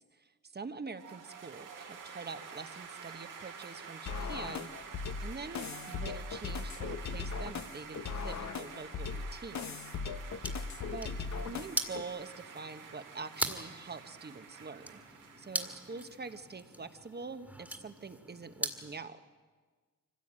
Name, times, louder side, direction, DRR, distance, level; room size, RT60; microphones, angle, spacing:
voice 1, 0.1-4.7 5.2-9.9 10.9-11.1 11.4-15.0 15.4-19.2, right 4 dB, 30° right, 10 dB, 1.2 m, -45 dB
sound 1, 0.9-16.5, right 6 dB, 75° right, 2.9 m, -49 dB
sound 2, 4.1-12.0, left 5 dB, 60° left, 1.1 m, -39 dB
sound 3, 10.1-19.0, right 1 dB, 5° right, 1.9 m, -42 dB
24.0 x 16.0 x 8.7 m, 1.5 s
cardioid pair, 95°, 32 cm